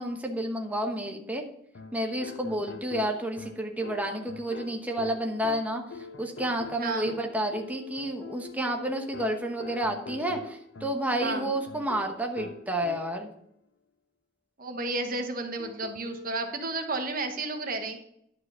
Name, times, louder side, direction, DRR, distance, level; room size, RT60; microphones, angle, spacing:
voice 1, 0.0-1.4 1.9-13.3, right 1 dB, 10° right, 2 dB, 1.0 m, -30 dB
sound 1, 1.7-13.4 15.6-16.4, left 3 dB, 70° left, 0.8 m, -44 dB
voice 2, 6.8-7.1 11.2-11.5 14.6-18.0, right 2 dB, 50° right, 5 dB, 1.3 m, -32 dB
11.0 x 4.8 x 6.9 m, 0.72 s
head